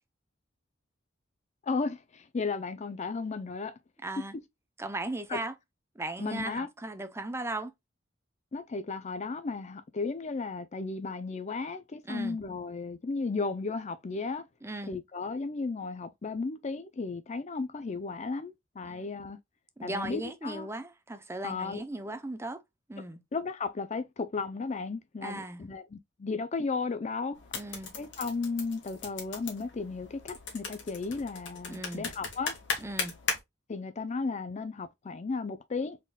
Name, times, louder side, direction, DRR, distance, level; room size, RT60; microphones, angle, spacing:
voice 1, 1.6-3.8 5.3-5.4 6.2-6.7 8.5-14.5 14.9-19.4 19.8-20.7 21.4-21.8 23.3-27.4 28.0-32.6 33.7-36.0, left 4 dB, 35° left, 0.5 m, -34 dB
voice 2, 4.0-4.4 4.8-5.5 6.0-7.7 12.1-12.4 14.6-14.9 18.9-19.1 19.8-22.6 22.9-23.2 25.2-25.6 27.5-27.9 31.7-32.1 32.8-33.2, right 2 dB, 15° right, 0.7 m, -37 dB
sound 1, 27.3-33.4, left 5 dB, 70° left, 1.8 m, -38 dB
4.3 x 3.7 x 2.3 m
head